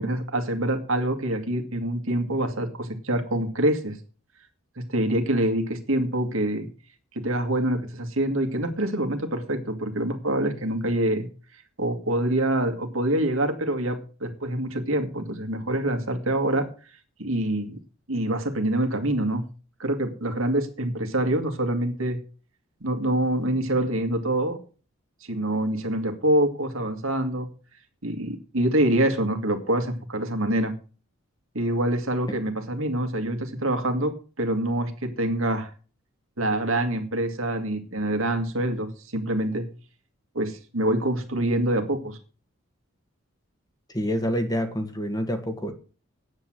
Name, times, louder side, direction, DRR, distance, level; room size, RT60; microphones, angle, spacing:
voice 1, 0.0-4.0 4.9-6.7 7.2-11.3 11.8-16.7 17.2-17.8 18.1-19.4 19.8-22.2 22.8-24.6 25.2-27.5 28.0-30.8 31.5-35.7 36.4-39.7 40.3-42.2, right 1 dB, 70° right, 6 dB, 2.2 m, -25 dB
voice 2, 43.9-45.7, equal, 15° left, 7 dB, 1.6 m, -27 dB
9.7 x 8.6 x 7.6 m, 0.37 s
head